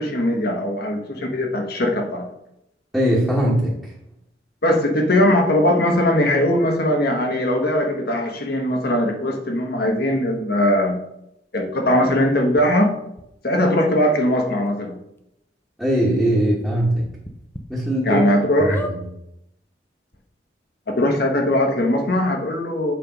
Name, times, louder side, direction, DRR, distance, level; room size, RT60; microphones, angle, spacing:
voice 1, 0.0-2.3 4.6-11.0 11.5-12.9 13.4-15.0 18.0-18.8 21.0-22.9, left 1 dB, 60° left, 2 dB, 1.3 m, -20 dB
voice 2, 2.9-3.8 15.8-17.1 17.7-18.2 18.7-19.0, right 1 dB, 5° right, -7 dB, 1.3 m, -20 dB
sound 1, 12.6-12.7 13.2-13.3 14.2-14.3 14.7-14.8 15.2-15.3 16.9-17.6 18.1-18.2 18.7-19.0 19.8-19.9 20.1-20.2, equal, 15° left, 0.6 m, -34 dB
7.6 x 3.4 x 5.2 m, 0.82 s
head